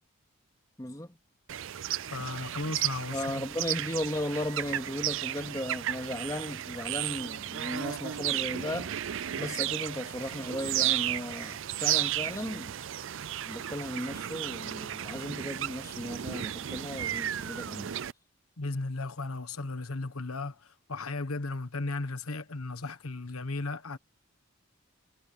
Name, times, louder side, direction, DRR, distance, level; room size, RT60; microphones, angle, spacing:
voice 1, 0.8-1.1 3.1-9.0 9.4-12.8 13.4-18.0, left 1 dB, 15° left, 2.1 m, -36 dB
sound 1, 1.5-18.1, right 12 dB, 60° right, 0.5 m, -34 dB
voice 2, 2.1-3.4 18.6-24.0, left 3 dB, 90° left, 1.3 m, -35 dB
head